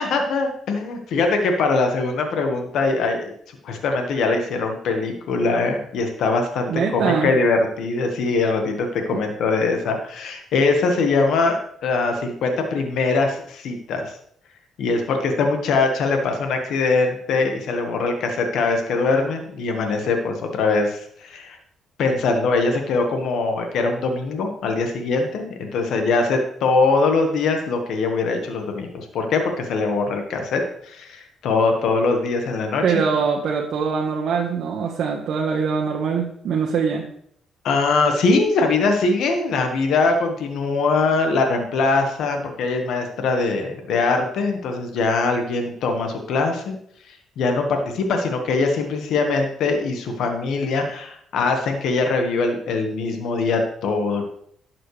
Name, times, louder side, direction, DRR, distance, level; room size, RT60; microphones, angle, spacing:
voice 1, 0.0-3.3 3.6-14.2 14.8-21.6 22.0-33.0 37.6-46.8 47.1-54.2, left 3 dB, 75° left, 4 dB, 1.4 m, -22 dB
voice 2, 6.7-7.3 9.1-9.2 32.8-37.0, right 6 dB, 65° right, -1 dB, 1.3 m, -23 dB
11.5 x 7.6 x 3.2 m, 0.65 s
cardioid pair, 90°, 0 cm